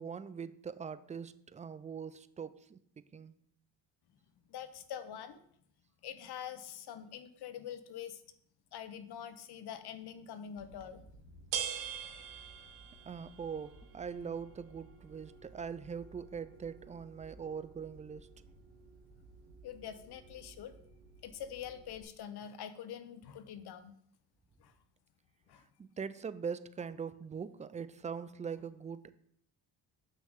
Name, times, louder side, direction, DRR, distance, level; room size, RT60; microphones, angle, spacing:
voice 1, 0.0-2.8 3.1-3.3 13.1-18.3 25.8-29.1, right 6 dB, 20° right, 15 dB, 0.4 m, -42 dB
voice 2, 4.5-5.4 6.0-8.2 8.7-11.4 19.6-20.7 21.2-23.9 24.6-24.7 25.5-25.6, left 9 dB, 65° left, 11 dB, 0.9 m, -45 dB
sound 1, 10.6-22.0, right 8 dB, 80° right, 1.2 m, -47 dB
6.8 x 6.1 x 3.7 m, 0.68 s
supercardioid pair, 70°, 42 cm